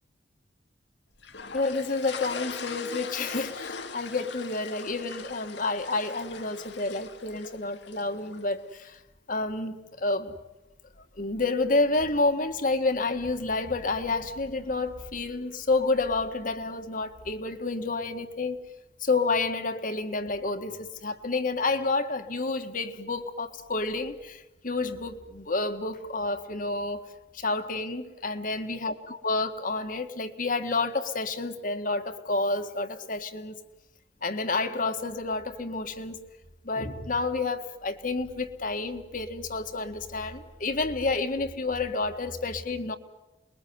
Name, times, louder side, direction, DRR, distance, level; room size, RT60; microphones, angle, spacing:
sound 1, 1.2-8.5, left 5 dB, 75° left, 1.7 m, -41 dB
voice 1, 1.5-9.0 9.3-10.4 11.2-18.6 19.0-27.0 27.3-33.6 34.2-36.2 36.6-43.0, left 3 dB, 50° left, 8 dB, 1.8 m, -29 dB
28.5 x 21.5 x 9.6 m, 1.0 s
head